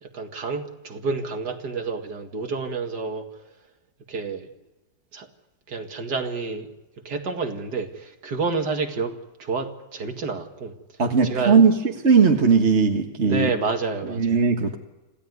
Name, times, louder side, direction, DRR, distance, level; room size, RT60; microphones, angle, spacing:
voice 1, 0.0-3.3 4.1-4.5 5.1-5.3 5.7-6.7 7.0-9.1 9.4-10.7 11.2-11.6 13.2-14.4, right 4 dB, 70° right, 6 dB, 2.7 m, -29 dB
voice 2, 11.0-11.7 12.0-13.5 14.2-14.8, right 5 dB, 40° right, 3 dB, 1.8 m, -18 dB
27.0 x 16.0 x 9.6 m, 1.1 s
omnidirectional pair, 1.9 m